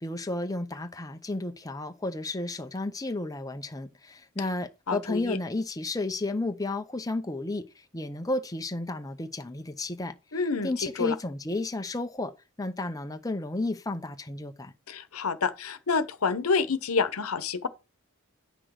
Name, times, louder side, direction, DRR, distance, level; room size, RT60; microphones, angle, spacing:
voice 1, 0.0-10.2 10.6-12.3 12.6-14.7, left 2 dB, 15° left, 0.7 m, -32 dB
voice 2, 4.9-5.4 10.3-10.7 11.0-11.1 14.9-17.7, left 4 dB, 85° left, 0.9 m, -28 dB
8.9 x 6.0 x 4.7 m
head